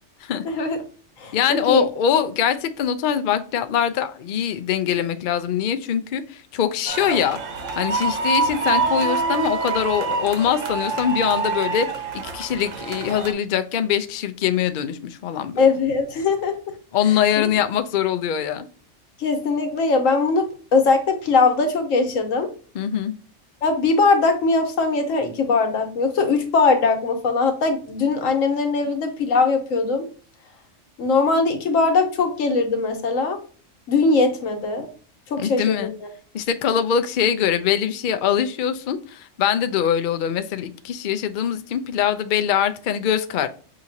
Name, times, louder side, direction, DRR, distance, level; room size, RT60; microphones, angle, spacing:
voice 1, 0.4-0.8 1.2-1.8 15.6-16.7 17.4-17.5 19.2-22.5 23.6-30.0 31.0-33.4 33.9-34.9 35.3-36.1, left 4 dB, 85° left, 5 dB, 1.3 m, -21 dB
voice 2, 1.3-7.4 7.8-11.9 12.1-15.6 16.9-18.7 22.7-23.1 35.4-35.9 36.3-43.5, left 9 dB, 65° left, 10 dB, 0.5 m, -23 dB
sound 1, 6.9-13.3, right 4 dB, 80° right, 1.2 m, -26 dB
6.0 x 2.8 x 2.7 m, 0.41 s
omnidirectional pair, 1.3 m